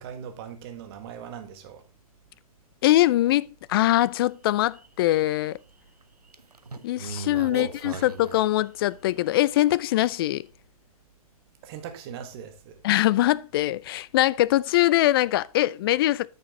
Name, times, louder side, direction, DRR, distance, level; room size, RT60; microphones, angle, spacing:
voice 1, 0.0-1.8 7.3-8.1 11.6-12.8, right 8 dB, 40° right, 1.7 m, -39 dB
voice 2, 2.8-5.6 6.8-10.4 12.8-16.3, left 15 dB, 40° left, 0.4 m, -22 dB
sound 1, 3.9-4.1 4.5-5.2 6.0-9.2 9.7-9.8, right 4 dB, 90° right, 0.9 m, -40 dB
9.0 x 6.5 x 3.7 m
figure-of-eight pair, 120°, 19 cm